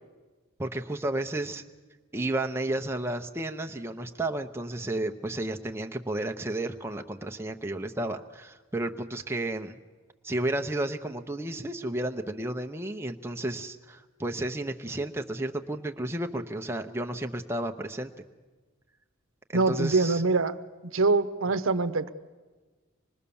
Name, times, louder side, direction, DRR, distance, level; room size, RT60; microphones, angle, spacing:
voice 1, 0.6-1.6 2.1-9.8 10.2-18.1 19.5-20.2, right 1 dB, 10° right, 4 dB, 0.7 m, -32 dB
voice 2, 19.5-20.6 20.9-22.1, right 3 dB, 75° right, 10 dB, 0.9 m, -24 dB
25.5 x 21.0 x 7.0 m, 1.3 s
head